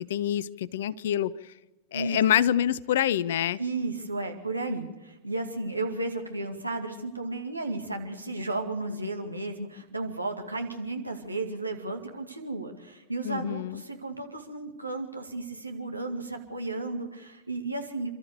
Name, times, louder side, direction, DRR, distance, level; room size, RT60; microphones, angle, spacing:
voice 1, 0.0-1.3 1.9-3.6 13.2-13.8, left 10 dB, 60° left, 0.6 m, -26 dB
voice 2, 3.6-18.1, right 2 dB, 85° right, 2.3 m, -33 dB
29.0 x 13.0 x 6.8 m
figure-of-eight pair, 90°, 0 cm